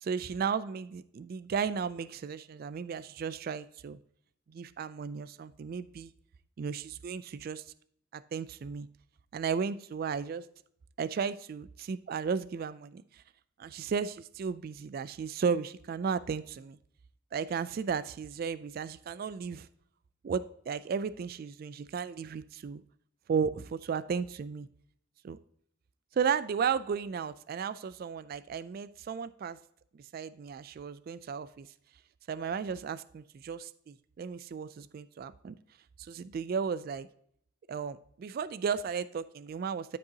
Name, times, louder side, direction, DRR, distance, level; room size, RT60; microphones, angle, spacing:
voice 1, 0.0-4.0 4.5-6.1 6.6-7.6 8.1-8.9 9.3-10.4 11.0-13.2 13.6-16.8 17.3-19.7 20.2-22.8 23.3-24.7 25.2-25.4 26.1-29.6 29.9-31.7 32.3-35.6 36.0-37.1 37.7-40.0, right 6 dB, 50° right, 15 dB, 0.3 m, -34 dB
13.0 x 5.3 x 2.8 m, 0.67 s
head